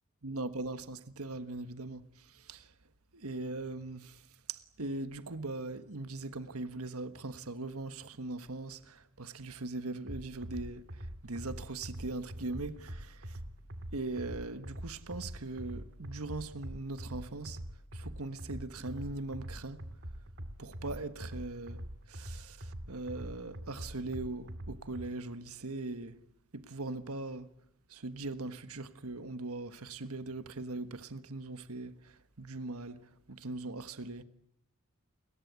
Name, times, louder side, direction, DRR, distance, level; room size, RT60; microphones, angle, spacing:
voice 1, 0.2-2.7 3.1-13.4 13.9-17.6 17.9-19.8 20.6-26.2 26.5-27.5 27.9-34.2, right 2 dB, 80° right, 1.4 m, -40 dB
sound 1, 10.1-25.1, equal, 50° right, 2.5 m, -44 dB
29.5 x 22.0 x 8.2 m
head